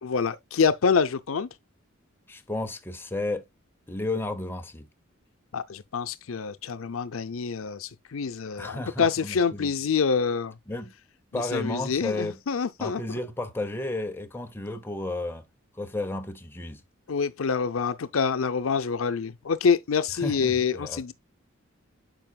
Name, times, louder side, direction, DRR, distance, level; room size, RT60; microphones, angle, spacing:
voice 1, 0.0-1.5 5.5-10.5 11.3-13.2 17.1-21.1, left 5 dB, 90° left, 0.6 m, -26 dB
voice 2, 2.3-3.4 3.9-4.9 8.6-9.7 10.7-10.9 11.3-12.4 12.8-15.4 15.8-16.8 20.2-21.0, left 2 dB, 10° left, 0.8 m, -32 dB
8.9 x 5.9 x 2.3 m
head